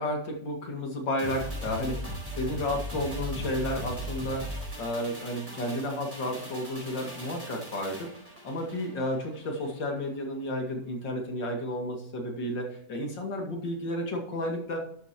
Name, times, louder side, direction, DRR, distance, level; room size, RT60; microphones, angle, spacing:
voice 1, 0.0-4.5 4.8-8.1 8.4-14.8, left 1 dB, 85° left, 2 dB, 2.9 m, -32 dB
sound 1, 1.2-9.8 10.1-10.2, equal, 5° right, 3.7 m, -38 dB
13.0 x 10.0 x 2.9 m, 0.63 s
omnidirectional pair, 1.9 m